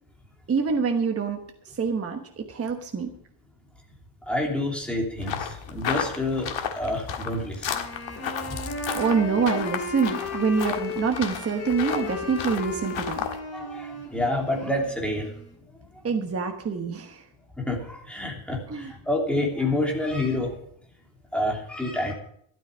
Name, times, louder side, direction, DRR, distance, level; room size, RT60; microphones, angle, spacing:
voice 1, 0.5-1.4 1.8-3.1 8.9-13.2 16.0-17.2 18.7-18.9, right 5 dB, 30° right, 3 dB, 1.2 m, -26 dB
voice 2, 4.2-7.8 8.4-8.6 13.5-15.3 17.6-20.6 21.3-22.1, left 1 dB, ahead, -1 dB, 3.0 m, -28 dB
sound 1, 5.2-13.4, left 7 dB, 65° left, 1.8 m, -33 dB
Wind instrument woodwind instrument, 7.7-15.6, left 2 dB, 30° left, 2.6 m, -35 dB
13.0 x 12.0 x 5.1 m, 0.67 s
wide cardioid pair, 170°, 49 cm